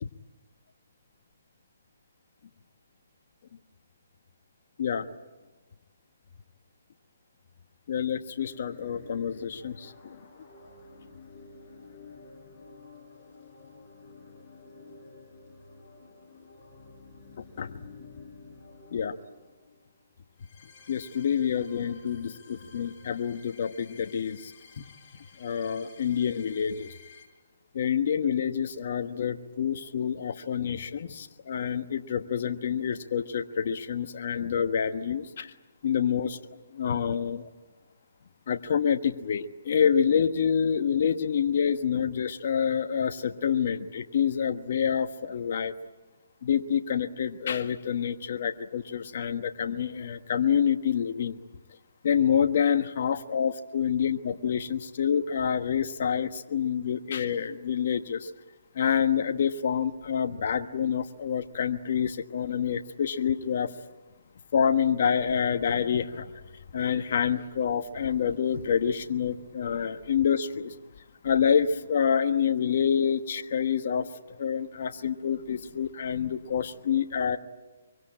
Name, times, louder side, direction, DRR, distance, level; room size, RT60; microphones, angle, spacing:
voice 1, 7.9-10.2 17.6-17.7 18.9-19.1 20.9-24.5 25.4-26.9 27.7-35.5 35.8-36.4 36.7-37.4 38.5-45.7 46.4-51.4 52.0-58.3 58.7-63.7 64.5-66.3 66.7-70.7 71.2-74.1 74.4-77.4, left 7 dB, 55° left, 7 dB, 1.3 m, -27 dB
sound 1, 8.4-27.3, left 4 dB, 35° left, 6.1 m, -51 dB
24.0 x 24.0 x 8.8 m, 1.3 s
hypercardioid pair, 150°, 0 cm